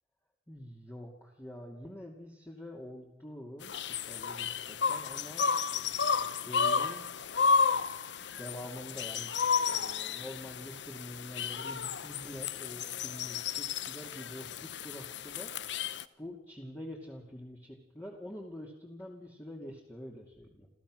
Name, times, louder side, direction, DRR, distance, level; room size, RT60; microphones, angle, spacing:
voice 1, 0.5-7.1 8.4-9.3 9.7-20.7, equal, 15° left, -1 dB, 2.7 m, -46 dB
sound 1, 3.6-16.0, left 5 dB, 70° left, 0.8 m, -32 dB
29.5 x 14.5 x 6.4 m, 0.86 s
head